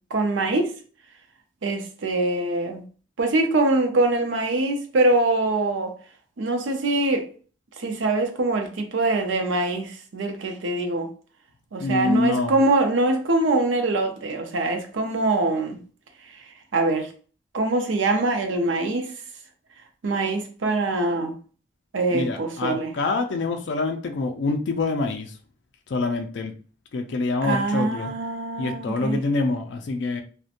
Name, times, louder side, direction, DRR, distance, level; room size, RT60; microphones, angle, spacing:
voice 1, 0.1-0.7 1.6-2.8 3.2-5.9 6.4-7.3 7.8-11.1 11.7-15.8 16.7-17.1 17.5-19.1 20.0-21.3 21.9-22.9 27.4-29.2, right 2 dB, 90° right, 0.5 m, -23 dB
voice 2, 11.8-12.5 22.1-25.3 25.9-26.5 26.9-28.1 28.6-30.2, left 3 dB, 70° left, 0.4 m, -26 dB
2.7 x 2.1 x 2.4 m
head